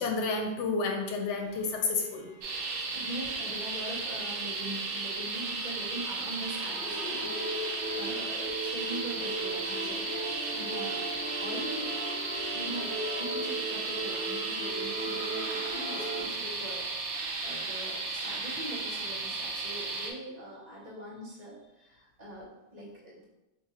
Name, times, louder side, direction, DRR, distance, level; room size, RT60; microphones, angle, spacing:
voice 1, 0.0-2.4 8.1-8.2, left 4 dB, 90° left, 3 dB, 0.9 m, -31 dB
sound 1, 1.4-3.3 4.7-16.3, right 1 dB, 45° left, 0.9 m, -38 dB
sound 2, 2.4-20.1, right 3 dB, 80° right, 0.9 m, -35 dB
voice 2, 2.9-12.0 12.5-23.3, right 1 dB, 40° right, -6 dB, 1.0 m, -42 dB
2.8 x 2.5 x 4.1 m, 0.98 s
omnidirectional pair, 1.2 m